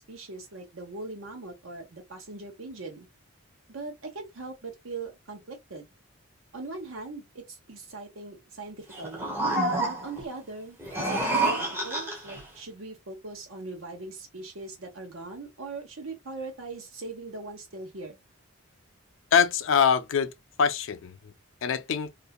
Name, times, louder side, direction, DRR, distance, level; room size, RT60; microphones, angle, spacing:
voice 1, 0.1-3.1 3.7-5.9 6.5-9.3 9.8-18.2, right 3 dB, 70° right, 1.0 m, -40 dB
sound 1, 8.9-10.2 10.8-12.4, right 2 dB, 10° right, 0.6 m, -28 dB
voice 2, 19.3-20.3 20.6-21.2 21.6-22.1, left 7 dB, 60° left, 0.4 m, -23 dB
2.6 x 2.2 x 2.3 m
head